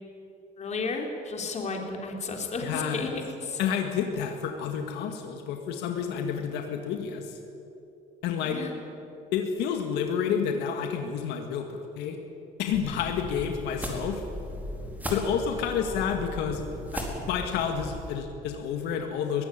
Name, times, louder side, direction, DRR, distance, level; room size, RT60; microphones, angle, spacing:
voice 1, 0.6-3.1 3.4-3.6 8.4-8.7 12.8-12.9, left 4 dB, 40° left, 2 dB, 3.7 m, -33 dB
voice 2, 2.6-3.1 3.6-7.4 8.2-8.6 9.3-12.2 12.6-14.2 15.1-16.6 16.9-19.4, left 7 dB, 90° left, 4 dB, 1.9 m, -30 dB
sound 1, 12.7-18.1, equal, 10° right, 4.5 m, -37 dB
21.5 x 16.0 x 10.0 m, 3.0 s
cardioid pair, 110°, 17 cm